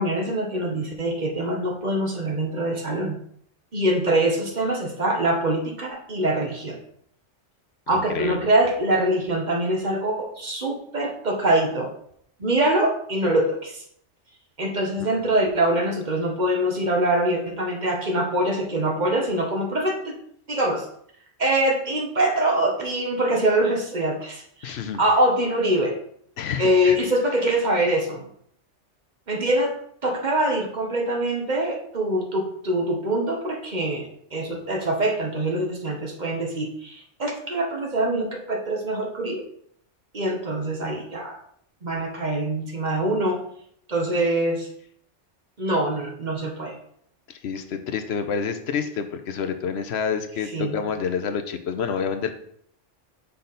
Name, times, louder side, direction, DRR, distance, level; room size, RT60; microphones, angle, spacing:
voice 1, 0.0-3.2 3.7-6.8 7.9-11.9 12.4-13.8 14.6-20.2 20.5-20.9 21.4-26.0 26.6-28.3 29.3-29.7 30.0-39.5 40.1-41.4 41.8-43.4 43.9-44.7 45.6-46.8 50.5-50.8, right 1 dB, 40° right, 2 dB, 1.1 m, -24 dB
voice 2, 7.9-8.5 15.0-15.2 24.6-25.0 26.4-27.0 47.3-52.3, left 6 dB, 65° left, 7 dB, 0.9 m, -28 dB
6.9 x 3.9 x 4.1 m, 0.65 s
omnidirectional pair, 1.3 m